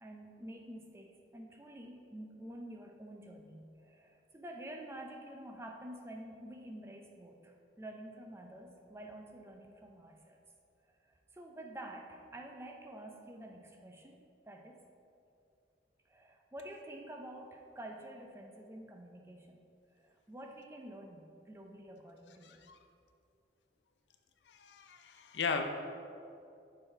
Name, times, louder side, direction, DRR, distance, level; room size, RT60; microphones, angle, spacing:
voice 1, 0.0-10.4 11.0-14.2 14.5-14.8 16.1-19.6 20.0-22.6, right 1 dB, 15° right, 2 dB, 0.4 m, -49 dB
voice 2, 22.4-22.8 24.5-25.6, left 5 dB, 75° left, 6 dB, 0.5 m, -37 dB
6.6 x 3.9 x 4.5 m, 2.5 s
head